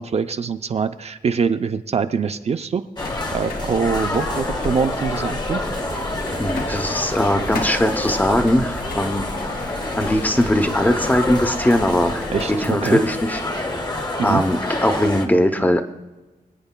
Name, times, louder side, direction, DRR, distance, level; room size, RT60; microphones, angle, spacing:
voice 1, 0.0-2.8 3.1-5.6 12.3-13.0 14.2-14.4, right 6 dB, 45° right, 8 dB, 0.4 m, -24 dB
sound 1, 3.0-12.6, left 2 dB, 90° left, 1.8 m, -33 dB
sound 2, 3.0-15.3, left 2 dB, 30° left, 1.0 m, -28 dB
sound 3, 5.6-12.5, right 3 dB, 30° right, 0.8 m, -39 dB
voice 2, 6.3-9.3 9.6-13.4 14.2-15.8, left 1 dB, 10° left, 7 dB, 0.6 m, -20 dB
26.0 x 9.0 x 2.2 m, 1.1 s
wide cardioid pair, 165°, 15 cm